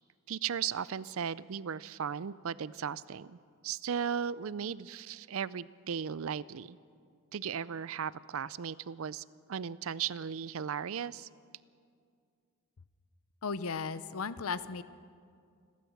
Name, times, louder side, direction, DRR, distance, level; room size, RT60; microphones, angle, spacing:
voice 1, 0.3-3.4 3.6-6.8 7.3-11.3, right 7 dB, 70° right, 19 dB, 0.5 m, -36 dB
voice 2, 13.4-14.8, left 5 dB, 80° left, 15 dB, 0.7 m, -35 dB
28.5 x 12.5 x 7.2 m, 2.3 s
head